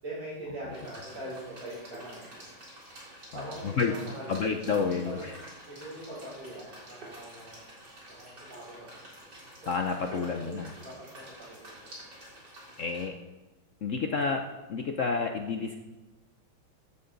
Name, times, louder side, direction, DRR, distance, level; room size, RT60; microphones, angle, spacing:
voice 1, 0.0-2.4 2.9-5.2 5.7-7.7 8.1-8.9 9.6-9.7 10.1-11.9, right 1 dB, 70° right, -11 dB, 6.5 m, -43 dB
sound 1, 0.7-13.0, right 1 dB, 50° right, 4.4 m, -49 dB
voice 2, 4.3-5.3 9.7-10.7 12.8-13.1 13.8-14.4 14.7-15.8, left 5 dB, 70° left, 3 dB, 0.7 m, -29 dB
14.5 x 11.5 x 3.9 m, 1.1 s
omnidirectional pair, 2.3 m